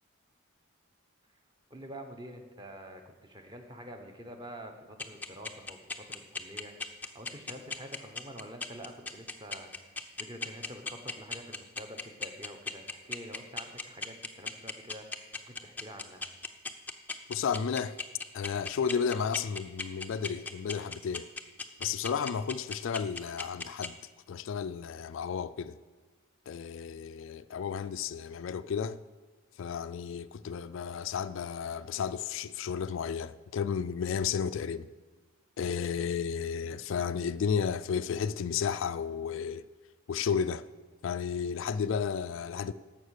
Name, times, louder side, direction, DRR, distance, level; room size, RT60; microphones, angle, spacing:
voice 1, 1.7-16.2, equal, 20° right, 1.0 m, -47 dB
sound 1, 5.0-23.9, left 4 dB, 10° left, 0.5 m, -36 dB
voice 2, 17.3-18.0 18.3-21.3 21.8-24.0 24.3-25.8 26.5-29.0 29.6-34.9 35.6-39.7 40.1-40.7 41.0-42.7, left 6 dB, 60° left, 0.3 m, -33 dB
11.5 x 7.3 x 6.5 m
head